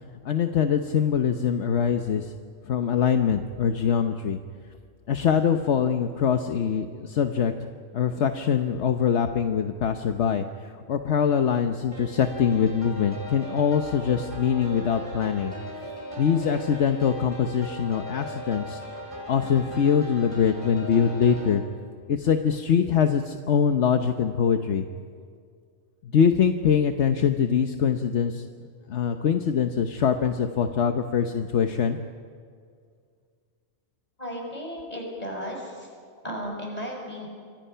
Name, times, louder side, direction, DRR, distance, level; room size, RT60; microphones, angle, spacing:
voice 1, 0.2-2.3 2.6-4.4 5.1-7.5 7.9-15.5 16.2-18.8 19.3-21.6 22.1-24.9 26.0-28.4 28.9-32.0, left 7 dB, 75° left, 6 dB, 1.2 m, -23 dB
sound 1, 11.9-21.5, equal, 25° right, 5.3 m, -38 dB
voice 2, 34.2-35.9 36.2-37.3, equal, 35° left, 0 dB, 6.1 m, -34 dB
27.5 x 24.5 x 5.7 m, 2.1 s
omnidirectional pair, 1.2 m